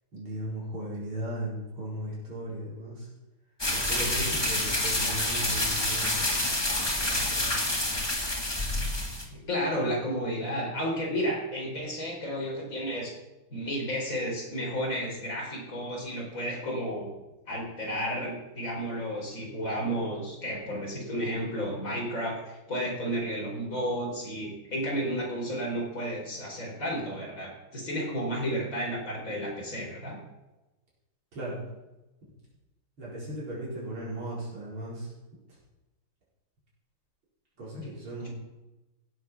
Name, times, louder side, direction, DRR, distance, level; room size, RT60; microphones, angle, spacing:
voice 1, 0.1-3.1 3.7-6.5 7.0-7.5 31.3-31.6 33.0-35.1 37.6-38.3, right 1 dB, 75° right, -7 dB, 5.3 m, -37 dB
sound 1, 3.6-9.2, left 1 dB, 10° left, 1.7 m, -28 dB
voice 2, 9.3-13.1 13.5-17.1 17.5-30.2 38.2-38.3, equal, 40° left, -2 dB, 5.1 m, -32 dB
16.0 x 8.4 x 6.1 m, 1.1 s
omnidirectional pair, 2.3 m